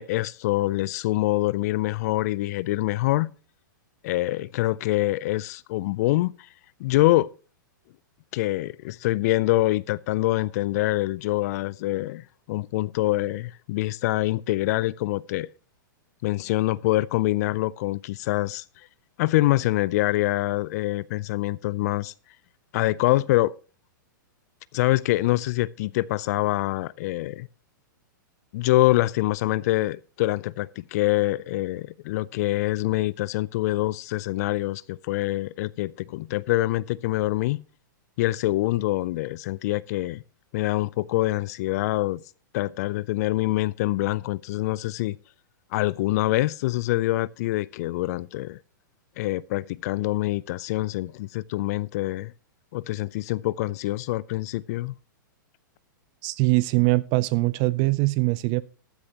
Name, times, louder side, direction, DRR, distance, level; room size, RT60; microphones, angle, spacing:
voice 1, 0.0-3.3 4.0-6.5 6.8-7.3 8.3-15.5 16.2-18.9 19.2-22.1 22.7-23.5 24.7-27.5 28.5-37.6 38.2-40.2 40.5-42.2 42.5-45.2 45.7-48.6 49.2-52.3 52.7-54.9, left 17 dB, 50° left, 0.4 m, -25 dB
voice 2, 56.2-58.6, right 22 dB, 40° right, 0.5 m, -22 dB
14.5 x 9.8 x 2.9 m
hypercardioid pair, 125°, 11 cm